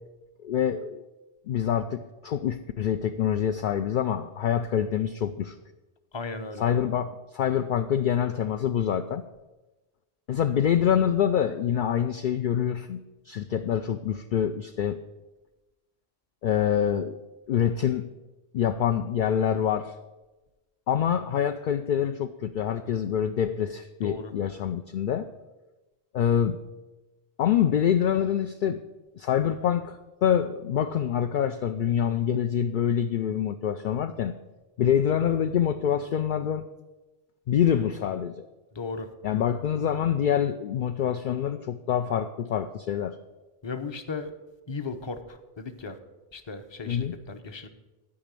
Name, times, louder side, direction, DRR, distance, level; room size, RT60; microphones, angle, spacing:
voice 1, 0.4-1.0 1.5-5.6 6.6-9.3 10.3-15.0 16.4-17.2 17.5-18.1 18.5-19.9 20.9-25.3 26.1-26.6 27.4-28.8 29.1-34.4 34.8-36.7 37.5-38.5 39.2-43.2 46.9-47.2, left 9 dB, 60° left, 9 dB, 0.6 m, -26 dB
voice 2, 6.1-6.6 24.0-24.3 38.7-39.1 43.6-44.3 44.7-46.0 46.3-47.7, left 4 dB, 30° left, 8 dB, 0.8 m, -36 dB
12.5 x 5.1 x 8.3 m, 1.1 s
omnidirectional pair, 1.1 m